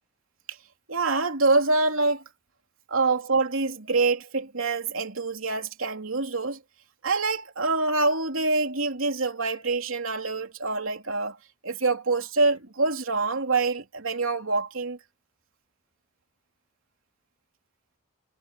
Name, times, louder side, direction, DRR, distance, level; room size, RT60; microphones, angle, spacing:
voice 1, 0.9-2.2 2.9-6.6 7.0-11.4 11.6-15.0, right 3 dB, 80° right, 3.1 m, -25 dB
head